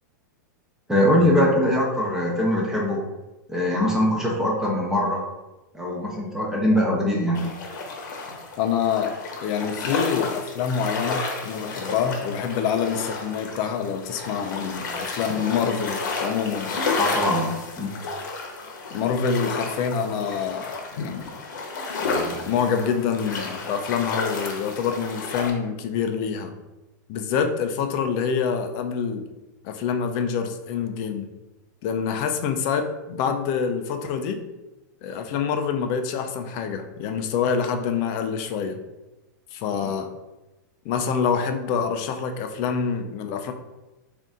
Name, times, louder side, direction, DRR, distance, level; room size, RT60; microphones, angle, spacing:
voice 1, 0.9-3.0 3.5-5.2 5.7-7.5 17.0-17.9, left 1 dB, 5° right, -4 dB, 0.7 m, -22 dB
sound 1, 7.3-25.5, left 3 dB, 75° left, 0.9 m, -31 dB
voice 2, 8.6-9.2 9.4-16.7 18.9-21.4 22.0-26.5 27.1-29.2 29.6-31.3 31.8-34.4 35.0-38.8 39.5-40.1 40.8-43.5, left 6 dB, 40° left, 7 dB, 0.4 m, -26 dB
3.8 x 2.6 x 3.6 m, 1.1 s
supercardioid pair, 145°, 10 cm